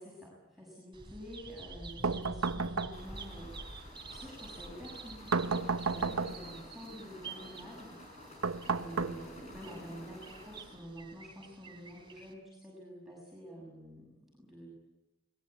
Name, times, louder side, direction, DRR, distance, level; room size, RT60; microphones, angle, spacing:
voice 1, 0.0-7.9 8.7-14.7, equal, ahead, -5 dB, 6.8 m, -48 dB
Bird vocalization bird call bird song, 0.9-12.3, right 3 dB, 25° right, 3.3 m, -49 dB
sound 1, 2.0-3.3 5.3-6.6 8.4-9.6, right 4 dB, 80° right, 0.9 m, -33 dB
sound 2, 2.9-10.8, left 1 dB, 30° left, 6.1 m, -52 dB
22.0 x 20.0 x 8.6 m, 1.0 s
head